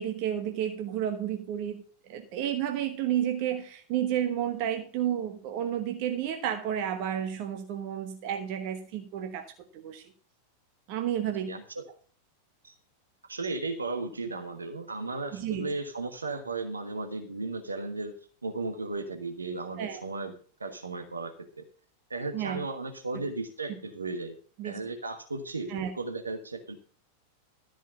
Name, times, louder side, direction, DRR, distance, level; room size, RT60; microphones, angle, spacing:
voice 1, 0.0-1.8 2.1-10.0 10.9-11.5 15.3-15.7 19.8-20.0 22.3-22.6 23.1-23.2 23.7-23.8 24.6-24.8 25.7-25.9, right 10 dB, 45° right, 6 dB, 1.1 m, -31 dB
voice 2, 11.4-11.8 12.6-12.7 13.3-18.1 18.4-20.3 20.6-21.3 21.6-21.7 22.1-24.4 24.6-26.8, right 3 dB, 75° right, 5 dB, 1.3 m, -35 dB
13.0 x 5.1 x 6.6 m, 0.43 s
figure-of-eight pair, 90°, 0 cm